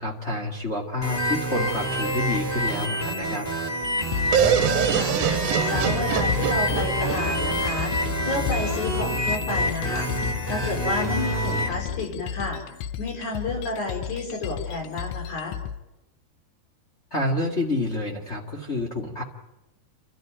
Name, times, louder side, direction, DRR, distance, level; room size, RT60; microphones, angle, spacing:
voice 1, 0.0-3.5 17.1-19.2, left 2 dB, 30° left, 0 dB, 1.4 m, -28 dB
sound 1, 1.0-11.7, right 1 dB, 5° left, 3.0 m, -27 dB
sound 2, 3.8-15.8, left 9 dB, 85° left, 1.6 m, -32 dB
voice 2, 4.3-10.1 10.4-12.6 13.0-15.6, left 2 dB, 50° left, 1 dB, 6.0 m, -31 dB
sound 3, 4.3-8.1, right 10 dB, 75° right, 2.6 m, -25 dB
29.5 x 13.0 x 9.1 m, 0.97 s
omnidirectional pair, 4.5 m